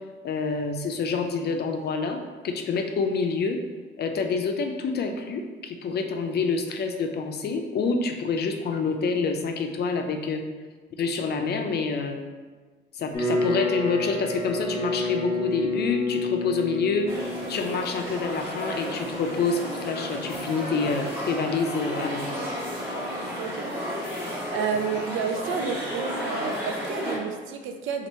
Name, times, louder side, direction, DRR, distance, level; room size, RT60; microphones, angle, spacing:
voice 1, 0.2-2.2 2.4-3.6 4.0-10.4 11.0-12.2 12.9-17.1 17.5-22.4, left 4 dB, 55° left, 5 dB, 0.5 m, -27 dB
sound 1, 13.1-24.2, left 2 dB, 25° left, 1.2 m, -32 dB
sound 2, 17.1-27.2, equal, 10° right, 1.2 m, -33 dB
voice 2, 23.4-23.9 24.3-28.1, right 6 dB, 85° right, 5 dB, 0.4 m, -31 dB
3.0 x 2.5 x 4.2 m, 1.4 s
cardioid pair, 90°, 20 cm